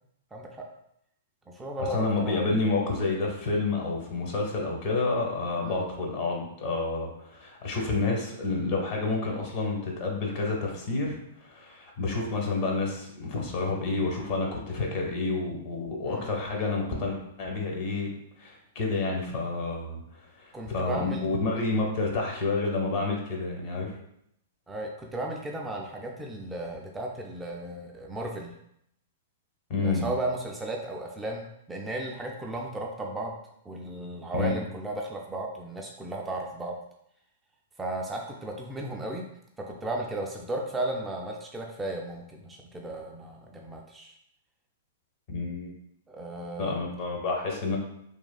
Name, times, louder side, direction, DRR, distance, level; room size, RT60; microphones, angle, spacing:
voice 1, 0.3-0.6 1.5-2.7 5.6-5.8 16.0-16.3 20.5-21.2 24.7-28.5 29.8-33.4 33.7-36.7 37.8-39.3 39.6-44.1 46.1-46.8, right 1 dB, 10° right, 0 dB, 0.3 m, -35 dB
voice 2, 1.8-11.2 11.4-18.1 18.4-20.0 20.4-23.9 29.7-30.1 34.3-34.5 45.3-45.7 46.6-47.8, left 3 dB, 45° left, 0 dB, 0.8 m, -29 dB
3.2 x 2.3 x 2.2 m, 0.75 s
hypercardioid pair, 110°, 0 cm